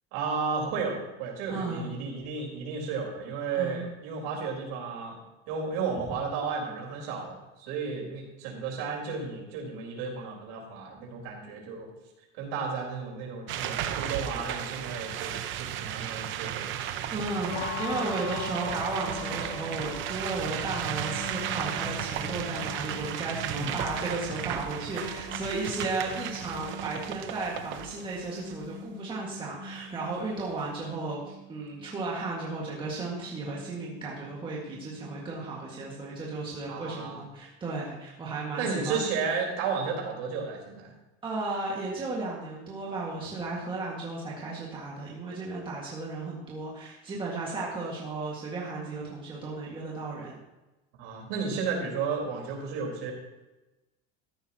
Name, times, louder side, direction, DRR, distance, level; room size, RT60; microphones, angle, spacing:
voice 1, 0.1-5.2 5.5-11.9 12.4-16.8 23.4-23.7 36.7-37.2 38.6-40.9 50.9-53.1, right 5 dB, 75° right, -2 dB, 4.4 m, -33 dB
voice 2, 1.5-1.9 3.5-3.9 17.1-39.0 41.2-50.4, right 3 dB, 15° right, -5 dB, 1.9 m, -34 dB
sound 1, 13.5-28.6 29.3-29.4 29.5-31.0, right 10 dB, 45° right, 0.7 m, -35 dB
sound 2, 17.5-37.3, left 3 dB, 85° left, 3.0 m, -42 dB
14.0 x 11.0 x 3.0 m, 1.1 s
cardioid pair, 170°, 29 cm